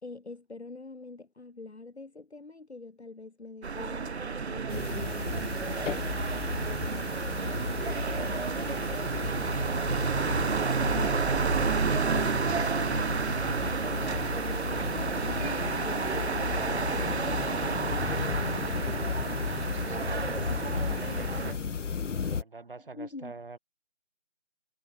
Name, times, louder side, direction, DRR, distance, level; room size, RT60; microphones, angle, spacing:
voice 1, 0.0-5.7 15.3-16.4 20.3-20.8 22.9-23.3, left 3 dB, 65° left, 2.4 m, -44 dB
sound 1, 3.6-21.5, right 5 dB, 65° right, 0.7 m, -31 dB
sound 2, 4.7-22.4, left 6 dB, 85° left, 0.6 m, -34 dB
voice 2, 6.9-11.6 12.4-15.2 16.0-18.5 19.4-20.0 20.5-21.7 22.3-23.6, right 3 dB, 50° right, 7.0 m, -44 dB
figure-of-eight pair, 160°, 36 cm